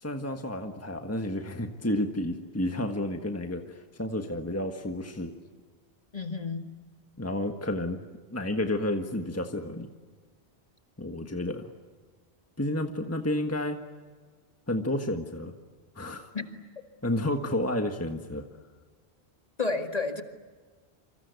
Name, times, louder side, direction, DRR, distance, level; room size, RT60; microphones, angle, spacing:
voice 1, 0.0-5.3 7.2-8.0 8.3-9.9 11.0-11.7 12.6-13.8 14.7-15.5 15.9-16.3 17.0-18.4, left 1 dB, 15° left, 5 dB, 1.5 m, -31 dB
voice 2, 6.1-6.7 11.2-11.4 16.3-16.4 19.6-20.2, left 4 dB, 35° left, 5 dB, 2.2 m, -31 dB
28.0 x 26.0 x 8.2 m, 1.5 s
omnidirectional pair, 1.1 m